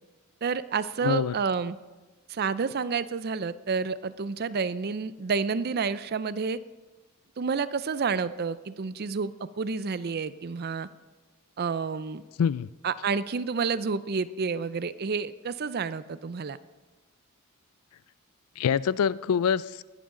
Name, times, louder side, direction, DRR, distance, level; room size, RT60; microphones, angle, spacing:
voice 1, 0.4-1.8 2.3-6.6 7.4-10.9 11.6-12.2 12.8-16.6, right 5 dB, 45° right, 16 dB, 0.5 m, -29 dB
voice 2, 1.0-1.3 12.4-12.7 18.6-19.8, left 7 dB, 80° left, 20 dB, 0.4 m, -25 dB
20.0 x 11.0 x 3.8 m, 1.2 s
head